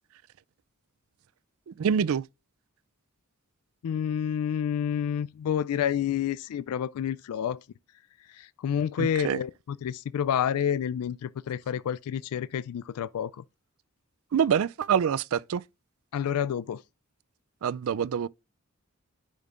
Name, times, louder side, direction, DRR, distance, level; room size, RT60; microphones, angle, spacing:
voice 1, 1.7-2.2 9.0-9.4 14.3-15.6 17.6-18.3, right 7 dB, 75° right, 0.4 m, -26 dB
voice 2, 3.8-7.7 8.2-13.4 16.1-16.8, left 9 dB, 90° left, 0.3 m, -29 dB
10.5 x 5.2 x 2.5 m
head